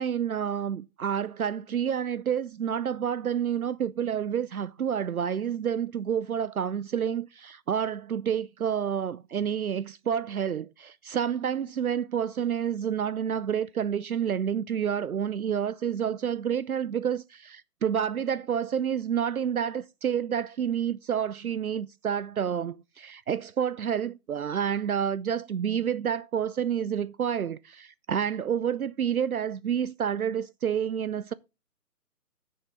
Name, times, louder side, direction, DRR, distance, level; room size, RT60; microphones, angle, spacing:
voice 1, 0.0-31.3, right 8 dB, 65° right, 0.6 m, -29 dB
9.7 x 6.4 x 4.5 m
figure-of-eight pair, 140°, 47 cm